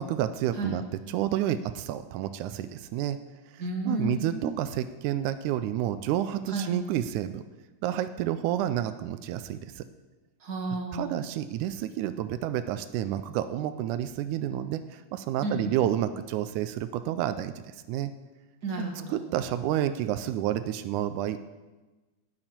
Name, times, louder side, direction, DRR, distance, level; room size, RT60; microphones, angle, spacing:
voice 1, 0.0-3.2 3.9-7.4 7.8-9.8 10.9-18.1 19.1-21.5, right 11 dB, 90° right, 11 dB, 2.1 m, -30 dB
voice 2, 3.6-4.5 6.5-6.8 10.4-11.2 15.4-15.7 18.6-19.2, right 2 dB, 35° right, 1 dB, 2.1 m, -32 dB
12.0 x 5.9 x 8.8 m, 1.2 s
omnidirectional pair, 3.4 m